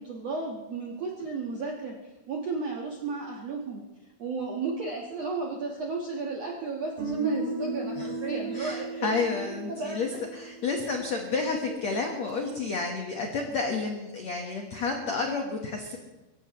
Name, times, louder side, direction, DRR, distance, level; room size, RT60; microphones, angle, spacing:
voice 1, 0.0-1.9 2.3-3.8 4.2-9.1 9.5-10.2 11.3-11.4 11.7-11.8, right 3 dB, 70° right, -1 dB, 1.5 m, -34 dB
Guitar, 7.0-10.9, right 3 dB, 50° right, 5.8 m, -34 dB
voice 2, 8.5-16.0, left 4 dB, 75° left, 2 dB, 1.5 m, -30 dB
23.5 x 16.5 x 3.1 m, 1.1 s
omnidirectional pair, 5.3 m